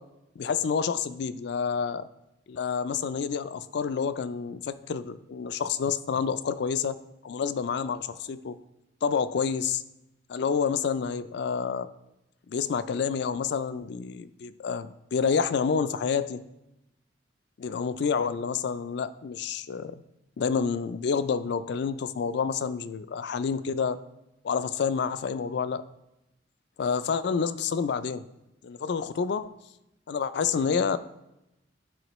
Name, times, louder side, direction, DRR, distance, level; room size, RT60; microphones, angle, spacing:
voice 1, 0.4-2.1 2.5-7.0 7.2-8.6 9.0-9.8 10.3-11.9 12.5-16.4 17.6-20.0 20.4-24.0 24.4-25.8 26.8-28.2 28.6-29.5 30.1-31.0, left 6 dB, 60° left, 14 dB, 0.3 m, -28 dB
10.5 x 4.2 x 3.1 m, 0.91 s
head